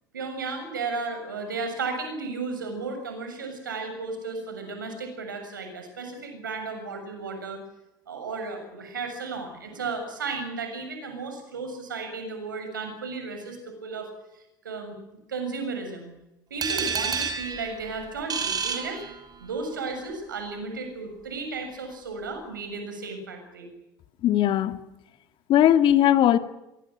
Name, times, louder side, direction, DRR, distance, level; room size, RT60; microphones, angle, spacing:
voice 1, 0.1-7.6 8.1-14.1 14.6-15.0 15.3-16.1 16.5-19.0 19.4-23.7, right 4 dB, 85° right, 6 dB, 6.9 m, -34 dB
sound 1, 16.6-19.6, right 6 dB, 40° right, 6.0 m, -30 dB
voice 2, 24.2-24.8 25.5-26.4, left 11 dB, 50° left, 10 dB, 2.1 m, -19 dB
25.5 x 23.0 x 6.4 m, 0.90 s
hypercardioid pair, 65°, 10 cm